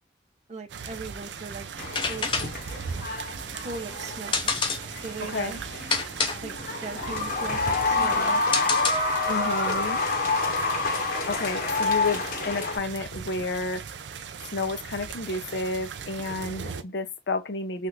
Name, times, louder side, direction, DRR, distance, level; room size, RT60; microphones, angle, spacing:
voice 1, 0.5-1.7 2.1-2.6 3.6-4.5 5.0-5.6 6.4-6.5 6.8-8.4, right 4 dB, 40° right, 0.7 m, -38 dB
sound 1, 0.7-16.8, right 6 dB, 85° right, 0.5 m, -39 dB
sound 2, 1.8-12.8, left 3 dB, 50° left, 1.0 m, -28 dB
sound 3, 1.8-9.4, left 4 dB, 30° left, 0.6 m, -30 dB
voice 2, 5.2-5.6 9.3-10.0 11.3-13.8 14.5-17.9, left 3 dB, 75° left, 0.6 m, -31 dB
3.4 x 2.5 x 2.8 m
head